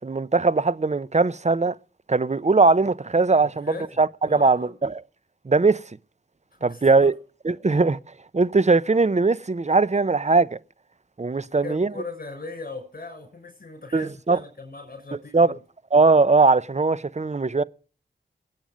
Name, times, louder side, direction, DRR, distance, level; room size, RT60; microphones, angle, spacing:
voice 1, 0.0-1.8 2.1-5.0 5.5-5.8 6.6-7.1 7.4-8.0 8.3-10.6 11.2-11.9 13.9-14.4 15.3-15.5 15.9-17.6, right 3 dB, 35° right, 0.8 m, -20 dB
voice 2, 3.7-4.7 6.6-7.1 7.7-7.8 11.4-15.6, left 3 dB, 45° left, 6.5 m, -39 dB
21.0 x 9.1 x 5.2 m
cardioid pair, 50°, 20 cm